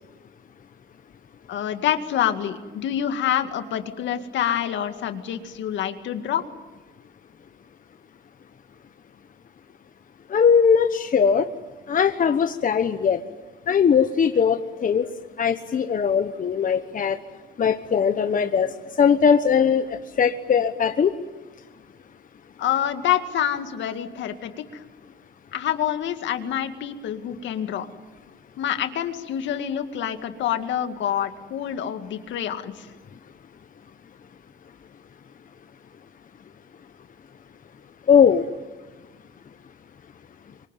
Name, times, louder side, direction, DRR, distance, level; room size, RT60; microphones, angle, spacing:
voice 1, 1.5-6.5 22.6-24.8 25.5-27.9 28.6-32.9, left 10 dB, 75° left, 7 dB, 2.2 m, -27 dB
voice 2, 10.3-11.5 11.9-13.2 13.7-15.1 15.4-17.2 17.6-21.2 38.1-38.4, left 7 dB, 45° left, 8 dB, 1.2 m, -20 dB
25.5 x 24.0 x 9.2 m, 1.2 s
supercardioid pair, 75°, 19 cm